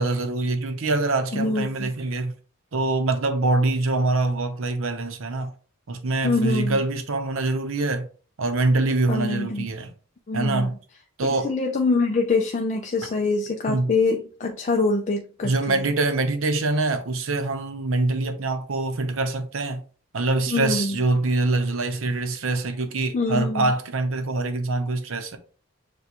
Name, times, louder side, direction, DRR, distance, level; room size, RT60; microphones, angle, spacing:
voice 1, 0.0-2.3 2.7-5.5 5.9-8.1 8.4-9.9 10.3-10.8 11.2-11.5 13.7-13.9 15.4-19.8 20.1-25.4, right 2 dB, 70° right, 0.7 m, -24 dB
voice 2, 1.3-1.9 6.2-6.8 9.1-9.7 10.3-10.7 11.2-15.8 20.5-21.0 23.1-23.7, left 3 dB, 35° left, 0.4 m, -24 dB
6.8 x 2.3 x 2.9 m
head